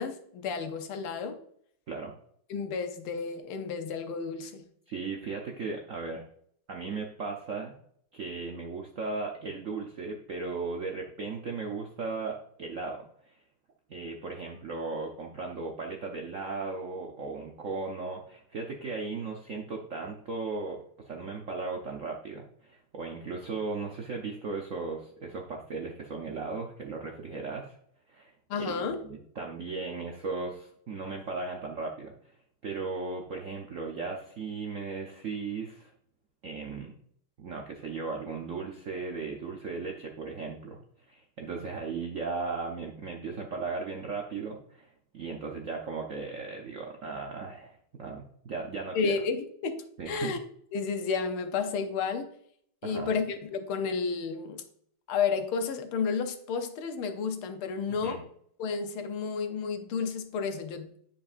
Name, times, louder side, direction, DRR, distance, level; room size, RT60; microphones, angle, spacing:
voice 1, 0.0-1.4 2.5-4.6 28.5-29.0 48.9-50.4 50.7-52.3 52.8-54.6 55.1-58.2 58.6-60.9, left 5 dB, 80° left, 1.7 m, -31 dB
voice 2, 4.9-6.2 6.7-7.7 8.1-13.4 13.9-27.8 28.1-28.3 28.6-32.1 32.6-35.9 36.4-36.9 37.4-40.8 41.1-49.2 50.0-50.3 52.8-53.1 57.9-58.2, right 4 dB, 70° right, 0.7 m, -36 dB
9.7 x 5.2 x 2.5 m
omnidirectional pair, 2.3 m